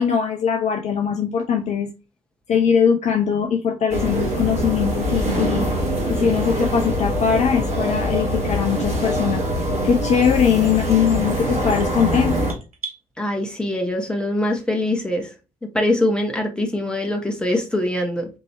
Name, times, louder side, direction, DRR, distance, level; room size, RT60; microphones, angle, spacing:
voice 1, 0.0-1.9 2.5-5.7 6.1-9.4 9.8-12.4, left 7 dB, 40° left, 0.5 m, -21 dB
sound 1, 3.9-12.5, equal, 35° right, 2.0 m, -23 dB
sound 2, 11.2-13.0, right 4 dB, 85° right, 0.5 m, -38 dB
voice 2, 13.2-15.3 15.6-18.3, left 1 dB, 5° left, 1.2 m, -23 dB
4.4 x 2.9 x 3.0 m
figure-of-eight pair, 45°, 18 cm